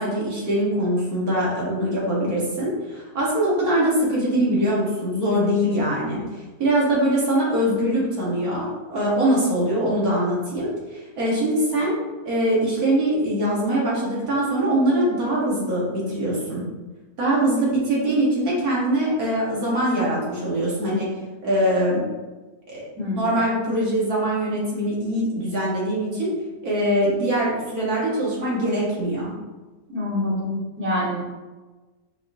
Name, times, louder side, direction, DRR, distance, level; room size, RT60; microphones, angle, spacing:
voice 1, 0.0-6.2 6.6-12.0 12.2-16.7 17.2-21.1 21.4-22.0 22.7-22.8 23.1-26.3 26.6-29.3, right 1 dB, 65° right, -5 dB, 1.7 m, -22 dB
voice 2, 23.0-23.4 29.9-31.2, left 1 dB, 10° right, -7 dB, 1.2 m, -26 dB
5.1 x 3.8 x 2.6 m, 1.2 s
omnidirectional pair, 1.8 m